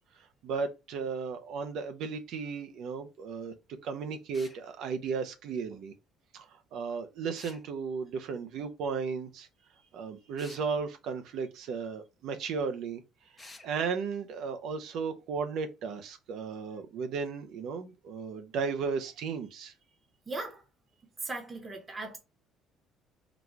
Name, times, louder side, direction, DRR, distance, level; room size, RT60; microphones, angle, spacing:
voice 1, 0.1-3.5 3.8-5.9 6.3-9.5 9.9-13.0 13.3-19.7, right 5 dB, 65° right, 0.5 m, -35 dB
sound 1, 4.3-4.6 7.3-7.6 10.4-10.7 13.4-13.7, left 3 dB, 15° left, 0.6 m, -50 dB
voice 2, 20.3-20.6 21.2-22.2, right 2 dB, 20° right, 0.9 m, -38 dB
4.0 x 2.2 x 4.5 m
cardioid pair, 155°, 0 cm